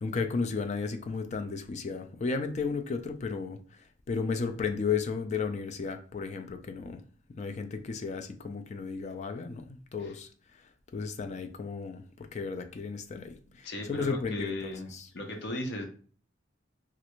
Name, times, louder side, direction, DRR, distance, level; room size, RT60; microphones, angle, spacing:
voice 1, 0.0-3.6 4.1-7.0 7.4-10.3 10.9-15.1, left 5 dB, 40° left, 8 dB, 0.4 m, -34 dB
voice 2, 13.6-15.8, left 1 dB, 65° left, 3 dB, 0.7 m, -37 dB
3.2 x 2.5 x 3.0 m, 0.42 s
head